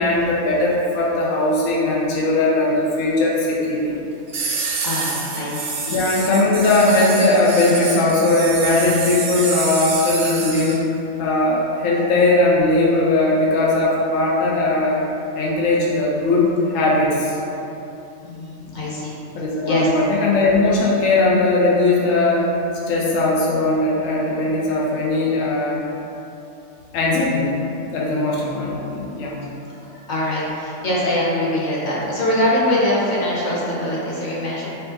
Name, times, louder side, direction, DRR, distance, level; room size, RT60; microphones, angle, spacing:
voice 1, 0.0-4.0 5.9-10.9 11.2-15.0 15.3-17.4 19.3-22.5 22.9-25.8 26.9-27.6 27.9-29.4, left 2 dB, 75° left, -4 dB, 1.0 m, -19 dB
sound 1, 4.3-10.8, right 4 dB, 60° right, 0.5 m, -27 dB
voice 2, 4.8-6.0 18.2-19.1 19.7-19.9 30.1-34.7, left 1 dB, 40° left, -7 dB, 0.8 m, -23 dB
4.5 x 2.7 x 3.7 m, 2.9 s
omnidirectional pair, 1.4 m